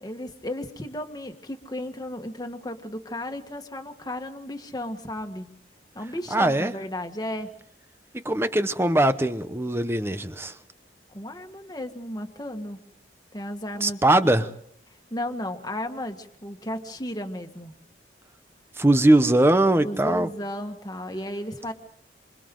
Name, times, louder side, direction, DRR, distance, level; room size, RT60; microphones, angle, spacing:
voice 1, 0.0-5.5 5.9-7.5 11.1-12.8 13.3-14.3 15.1-17.7 19.8-21.7, left 1 dB, 20° left, 5 dB, 1.7 m, -34 dB
voice 2, 6.3-6.7 8.1-10.6 13.8-14.5 18.8-20.3, right 1 dB, 15° right, 11 dB, 0.9 m, -21 dB
27.5 x 26.5 x 3.8 m, 0.66 s
head